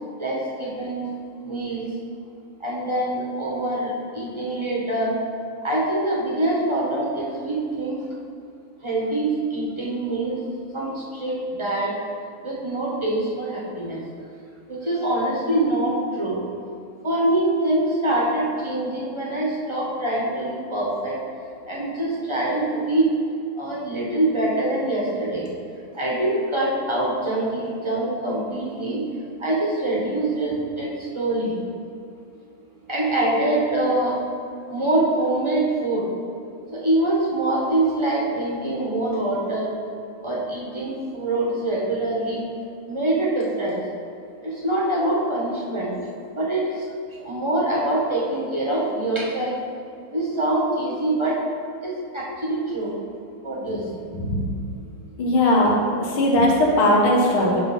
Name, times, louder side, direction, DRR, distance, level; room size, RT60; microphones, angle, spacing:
voice 1, 0.2-1.1 1.4-1.8 2.6-5.2 5.6-8.0 8.8-10.4 10.7-11.9 12.4-14.0 14.7-16.4 17.0-21.2 21.6-23.1 23.6-25.5 25.9-29.0 29.4-31.6 32.9-34.2 34.7-36.0 36.7-39.7 40.2-42.4 42.9-43.8 44.4-45.9 46.3-46.8 47.2-49.6 50.1-51.4 51.8-52.9 53.4-54.0, right 1 dB, 15° right, -5 dB, 1.1 m, -24 dB
voice 2, 55.2-57.6, left 1 dB, 75° left, -2 dB, 2.1 m, -19 dB
10.5 x 3.7 x 5.5 m, 2.4 s
omnidirectional pair, 2.4 m